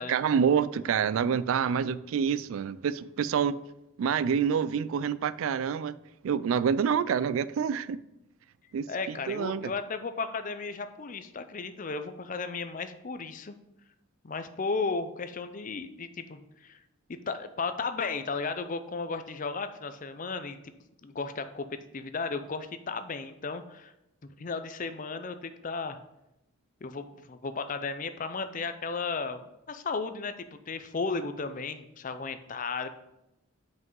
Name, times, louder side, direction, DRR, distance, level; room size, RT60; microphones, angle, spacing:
voice 1, 0.0-3.6 4.0-5.9 6.2-8.0 8.7-9.7, right 7 dB, 70° right, 16 dB, 0.3 m, -27 dB
voice 2, 8.9-13.6 14.2-16.8 17.1-20.6 21.0-23.9 24.2-26.0 26.8-32.9, left 4 dB, 40° left, 10 dB, 0.5 m, -34 dB
6.0 x 5.3 x 5.4 m, 0.88 s
head